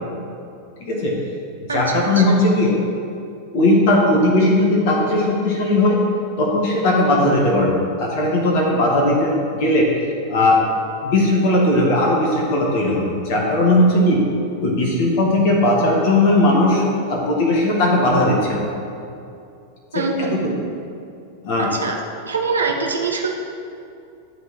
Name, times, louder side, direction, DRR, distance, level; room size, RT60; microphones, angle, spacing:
voice 1, 0.8-1.1 1.7-2.8 3.5-6.0 6.4-10.6 11.0-14.2 14.6-18.6 19.9-20.0 20.3-20.4 21.4-21.7, left 1 dB, 50° left, -2 dB, 1.7 m, -18 dB
voice 2, 1.7-2.3 19.9-20.7 21.6-21.9 22.3-23.3, right 4 dB, 75° right, 1 dB, 1.1 m, -24 dB
12.0 x 4.1 x 7.3 m, 2.6 s
figure-of-eight pair, 90°, 0 cm